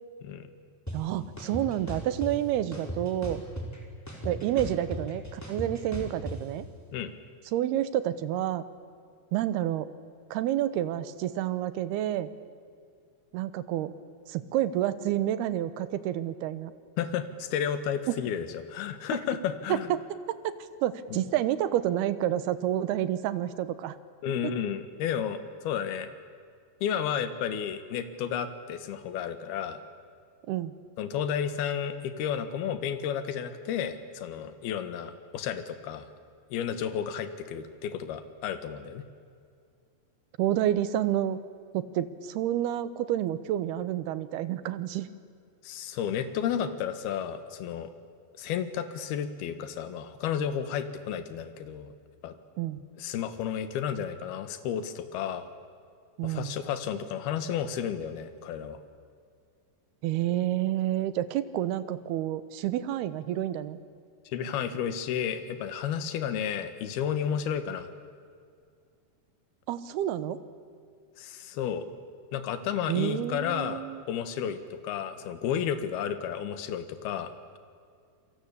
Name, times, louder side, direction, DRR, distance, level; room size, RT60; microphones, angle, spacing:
sound 1, 0.9-1.0 1.4-2.3 2.7-3.8 4.1-6.4, equal, 5° left, 4.1 m, -36 dB
voice 1, 0.9-3.4 4.3-6.7 7.5-8.6 9.3-9.9 10.3-12.3 13.3-13.9 14.3-16.7 18.1-18.2 19.7-20.0 20.3-20.5 20.8-24.0 30.5-30.7 40.4-41.4 41.7-45.1 52.6-52.8 56.2-56.6 60.0-63.8 69.7-70.4 72.9-74.0, right 12 dB, 75° right, 14 dB, 2.9 m, -29 dB
voice 2, 17.0-19.9 21.1-21.2 24.2-26.1 26.8-29.8 31.0-36.1 36.5-39.1 45.6-47.9 48.4-51.9 52.2-52.4 53.0-55.5 56.2-58.8 64.3-67.9 71.2-71.9 72.3-73.8 74.1-77.6, left 8 dB, 70° left, 10 dB, 3.3 m, -32 dB
28.5 x 23.5 x 8.5 m, 2.2 s
omnidirectional pair, 4.8 m